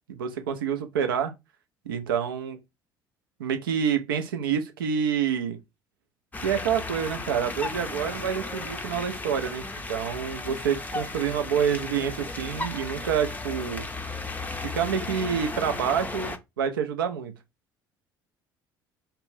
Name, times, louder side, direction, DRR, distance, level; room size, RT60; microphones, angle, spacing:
voice 1, 0.1-1.3 1.9-2.6 3.4-5.6 6.4-13.9 14.7-17.3, right 7 dB, 80° right, 0.4 m, -27 dB
sound 1, 6.3-16.4, left 2 dB, 15° left, 0.4 m, -35 dB
2.5 x 2.0 x 3.1 m
hypercardioid pair, 55°, 11 cm